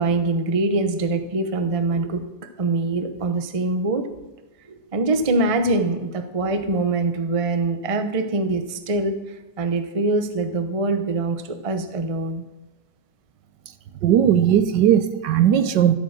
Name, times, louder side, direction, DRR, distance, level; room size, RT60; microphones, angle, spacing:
voice 1, 0.0-2.2 2.6-4.1 4.7-9.2 9.6-12.4, right 2 dB, 30° right, 8 dB, 0.6 m, -23 dB
voice 2, 14.0-16.0, right 10 dB, 75° right, 11 dB, 1.3 m, -17 dB
13.0 x 8.6 x 6.5 m, 1.1 s
omnidirectional pair, 2.0 m